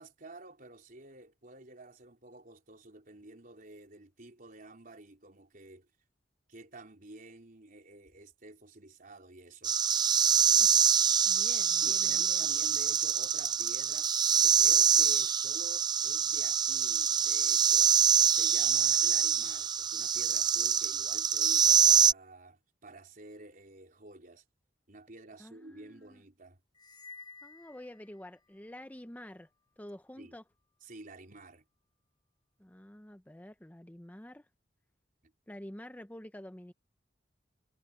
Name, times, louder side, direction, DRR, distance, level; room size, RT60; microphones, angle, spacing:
voice 1, 0.0-5.9 6.5-9.8 11.8-14.1 14.4-24.4 24.9-26.6 30.2-30.4 30.8-31.6 35.2-35.3, right 2 dB, 50° right, 4.3 m, -51 dB
sound 1, 9.6-22.1, right 7 dB, 25° right, 0.4 m, -25 dB
voice 2, 11.3-12.5 25.4-26.2 27.4-29.5 29.8-30.4 32.6-34.5 35.5-36.7, left 1 dB, 10° left, 0.7 m, -48 dB
sound 2, 26.7-28.6, left 4 dB, 25° left, 3.9 m, -52 dB
head